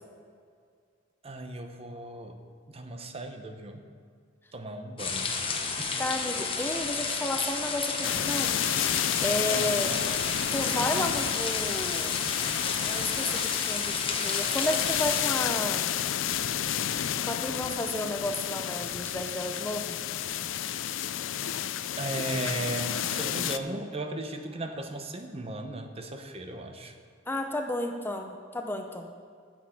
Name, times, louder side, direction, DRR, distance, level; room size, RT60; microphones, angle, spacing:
voice 1, 1.2-2.4 2.7-3.8 4.5-5.4 5.8-6.0 9.5-10.1 22.0-26.9, right 2 dB, 30° right, 6 dB, 0.8 m, -36 dB
sound 1, 5.0-15.2, left 4 dB, 30° left, 1.1 m, -32 dB
voice 2, 6.0-8.6 9.2-9.9 10.5-12.2 12.8-15.9 17.2-20.0 27.3-29.1, left 1 dB, 10° left, 4 dB, 0.6 m, -32 dB
sound 2, 8.0-23.6, left 10 dB, 75° left, 0.4 m, -31 dB
10.0 x 7.4 x 7.2 m, 2.1 s
head